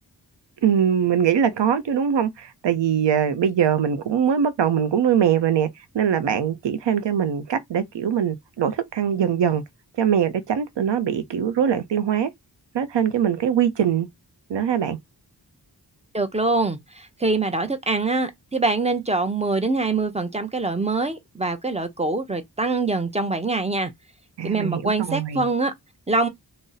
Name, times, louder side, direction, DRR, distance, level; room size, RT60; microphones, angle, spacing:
voice 1, 0.6-5.7 5.9-9.6 10.0-12.3 12.7-14.1 14.5-15.0 24.4-25.5, right 8 dB, 80° right, 0.6 m, -22 dB
voice 2, 16.1-23.9 24.4-25.7 26.1-26.3, right 3 dB, 15° right, 0.4 m, -24 dB
2.6 x 2.0 x 3.8 m
wide cardioid pair, 90°, 42 cm